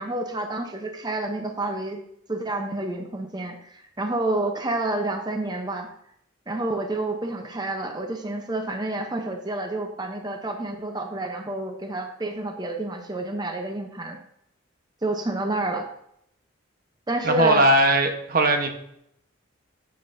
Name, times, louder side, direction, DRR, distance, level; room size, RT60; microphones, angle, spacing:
voice 1, 0.0-2.0 2.3-5.9 6.5-14.2 15.0-15.9 17.1-17.7, right 2 dB, 20° right, 4 dB, 0.7 m, -29 dB
voice 2, 17.2-18.7, right 1 dB, 45° right, 5 dB, 1.0 m, -19 dB
9.1 x 8.6 x 2.6 m, 0.74 s
head